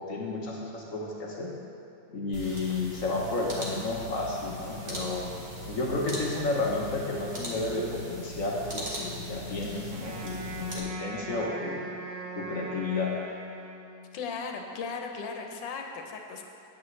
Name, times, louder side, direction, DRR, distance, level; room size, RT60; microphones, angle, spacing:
voice 1, 0.0-1.5 2.1-5.3 5.7-11.9 12.4-13.1, left 3 dB, 55° left, -2 dB, 1.1 m, -32 dB
sound 1, 2.3-10.8, right 1 dB, 35° right, 1.6 m, -39 dB
Wind instrument woodwind instrument, 9.9-14.3, right 3 dB, 65° right, 1.3 m, -41 dB
voice 2, 14.1-16.4, left 5 dB, 90° left, 3 dB, 1.5 m, -36 dB
9.7 x 8.7 x 3.2 m, 2.8 s
omnidirectional pair, 2.0 m